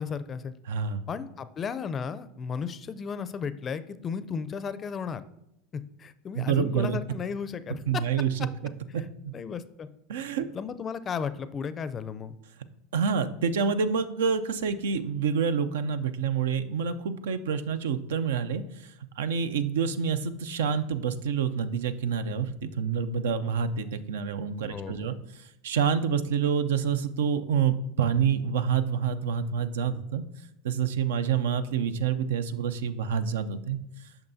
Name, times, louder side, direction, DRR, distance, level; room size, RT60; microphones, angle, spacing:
voice 1, 0.0-0.5 1.1-5.2 5.7-8.1 9.3-9.9 10.5-12.4 24.7-25.1, left 6 dB, 30° left, 13 dB, 0.4 m, -34 dB
voice 2, 0.7-1.0 6.4-7.0 7.9-8.3 8.9-9.3 10.1-10.5 12.9-25.2 25.6-30.2 30.6-33.8, right 7 dB, 80° right, 11 dB, 0.4 m, -27 dB
8.7 x 6.0 x 2.7 m, 0.83 s
hypercardioid pair, 95°, 0 cm